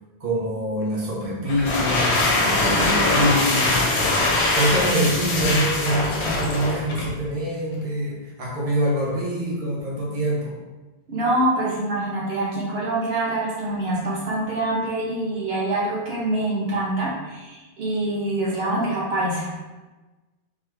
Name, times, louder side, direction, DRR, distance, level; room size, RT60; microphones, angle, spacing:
voice 1, 0.2-3.8 4.2-10.6, equal, 35° right, -5 dB, 0.9 m, -25 dB
sound 1, 1.5-7.2, left 2 dB, 75° left, 1.0 m, -22 dB
voice 2, 11.1-19.5, right 1 dB, 70° right, -5 dB, 1.1 m, -25 dB
3.6 x 3.2 x 3.2 m, 1.2 s
omnidirectional pair, 1.1 m